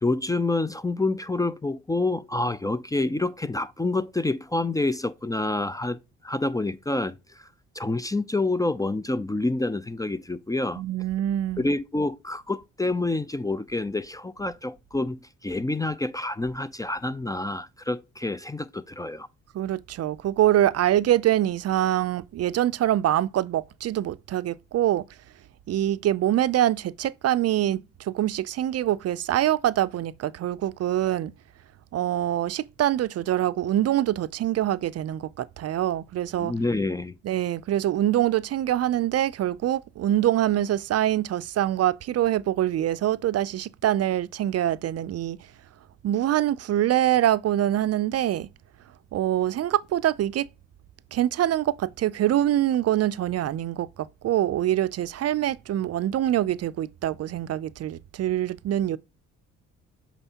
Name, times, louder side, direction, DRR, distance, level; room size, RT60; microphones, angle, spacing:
voice 1, 0.0-7.5 7.7-10.8 11.6-19.3 36.4-37.1, left 2 dB, 10° left, 0.4 m, -28 dB
voice 2, 10.7-11.6 19.5-25.0 25.7-31.3 31.9-36.5 37.2-45.4 46.0-48.5 49.1-50.5 51.1-59.0, right 12 dB, 55° right, 0.5 m, -24 dB
8.0 x 4.3 x 2.8 m
cardioid pair, 90°, 30 cm